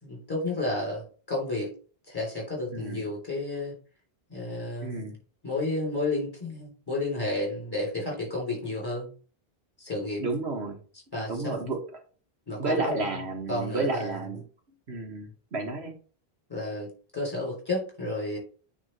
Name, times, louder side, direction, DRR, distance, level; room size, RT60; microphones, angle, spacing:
voice 1, 0.0-1.7 2.1-3.7 4.3-5.0 5.4-9.1 9.8-10.2 11.1-11.7 12.5-13.0 13.5-14.3 16.5-18.4, left 2 dB, 20° left, -2 dB, 3.3 m, -31 dB
voice 2, 2.7-3.0 4.8-5.2 10.2-10.8 11.3-12.0 12.6-14.4 14.9-15.9, right 3 dB, 90° right, 3 dB, 1.7 m, -32 dB
9.1 x 3.5 x 3.2 m, 0.38 s
omnidirectional pair, 1.1 m